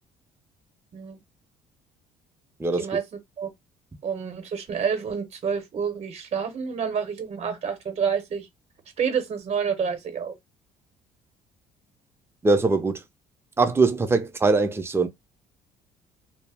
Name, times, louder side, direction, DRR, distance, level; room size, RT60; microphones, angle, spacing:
voice 1, 4.0-8.5 9.0-10.3, right 6 dB, 45° right, 0.9 m, -28 dB
voice 2, 12.4-13.0 13.6-15.1, right 3 dB, 15° right, 0.6 m, -21 dB
2.2 x 2.0 x 3.4 m
supercardioid pair, 80°, 15 cm